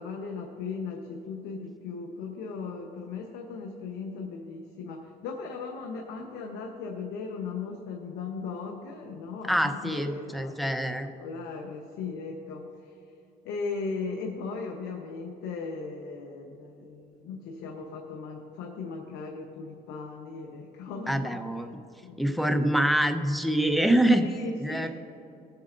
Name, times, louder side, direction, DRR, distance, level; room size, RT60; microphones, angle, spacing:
voice 1, 0.0-10.8 11.0-12.9 13.4-21.4 22.0-22.7 24.1-24.9, left 4 dB, 85° left, 2 dB, 1.0 m, -37 dB
voice 2, 9.5-11.1 21.1-21.7 22.2-24.2 24.6-24.9, right 1 dB, ahead, 6 dB, 0.7 m, -25 dB
20.5 x 7.6 x 2.5 m, 2.8 s
cardioid pair, 110°, 17 cm